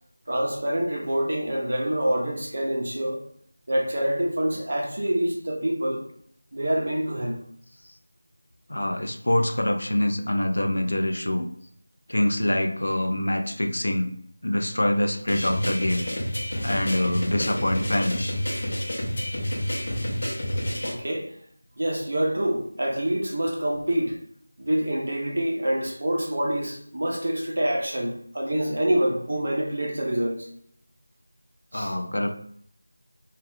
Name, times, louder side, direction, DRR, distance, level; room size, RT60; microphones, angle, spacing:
voice 1, 0.3-3.2 3.7-6.0 6.5-7.4 20.8-21.3 21.8-24.2 24.6-30.5 31.7-31.9, right 1 dB, 50° right, -1 dB, 0.6 m, -26 dB
voice 2, 8.7-11.5 12.1-14.1 14.4-16.0 16.6-18.3 31.7-32.3, left 1 dB, 80° left, 6 dB, 0.5 m, -25 dB
sound 1, 15.3-20.9, equal, 45° left, 0.8 m, -29 dB
3.4 x 2.3 x 3.2 m, 0.64 s
figure-of-eight pair, 175°, 0 cm